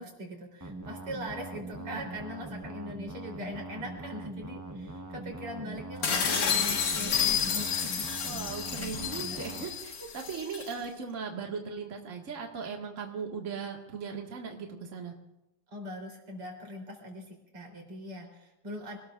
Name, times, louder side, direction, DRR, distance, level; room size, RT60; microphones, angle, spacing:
voice 1, 0.0-8.1 9.3-9.4 15.7-19.0, equal, 85° right, 0 dB, 4.9 m, -41 dB
sound 1, 0.6-9.6, right 2 dB, 15° right, 0.5 m, -42 dB
voice 2, 1.6-2.0 8.2-15.1, right 5 dB, 35° right, 0 dB, 2.1 m, -38 dB
sound 2, 6.0-10.7, left 7 dB, 80° left, 2.6 m, -30 dB
26.5 x 19.5 x 2.5 m, 0.92 s
omnidirectional pair, 2.4 m